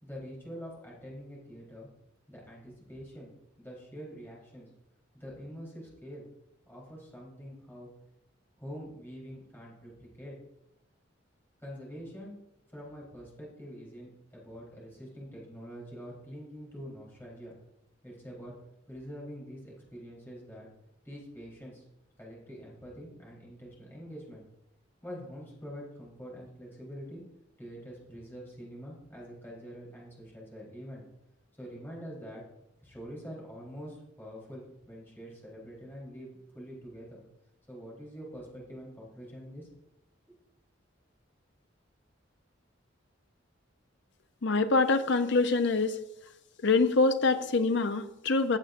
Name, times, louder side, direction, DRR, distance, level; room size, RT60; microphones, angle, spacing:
voice 1, 0.0-1.9 2.3-3.3 3.6-4.7 5.1-6.3 6.7-7.9 8.6-10.3 11.6-12.4 12.7-17.5 18.0-18.5 18.9-20.7 21.0-21.8 22.2-24.4 25.0-27.2 27.6-31.0 31.6-32.4 32.8-37.2 37.7-39.7, equal, 10° left, -5 dB, 4.0 m, -45 dB
voice 2, 44.4-46.0 46.6-48.6, left 3 dB, 65° left, 8 dB, 0.8 m, -25 dB
15.5 x 7.4 x 2.6 m, 0.88 s
head